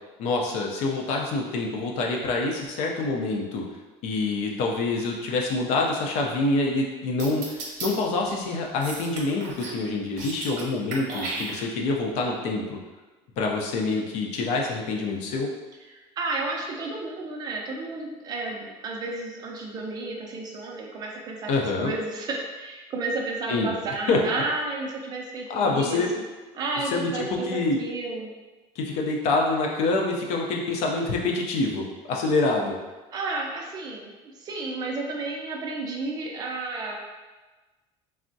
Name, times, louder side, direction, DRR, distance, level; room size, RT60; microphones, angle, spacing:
voice 1, 0.2-3.6 4.0-12.8 13.4-15.5 21.5-21.9 23.5-23.7 24.1-24.2 25.5-26.1 26.8-27.8 28.8-32.8, left 3 dB, 65° left, 0 dB, 0.5 m, -26 dB
sound 1, 7.2-7.9 8.8-9.8 10.1-10.6 10.9-11.9, right 3 dB, 75° right, 0.7 m, -34 dB
voice 2, 15.9-21.5 21.8-26.2 26.5-28.3 33.1-37.0, right 3 dB, 30° right, 0 dB, 0.4 m, -32 dB
3.4 x 2.0 x 2.6 m, 1.2 s
cardioid pair, 160°, 13 cm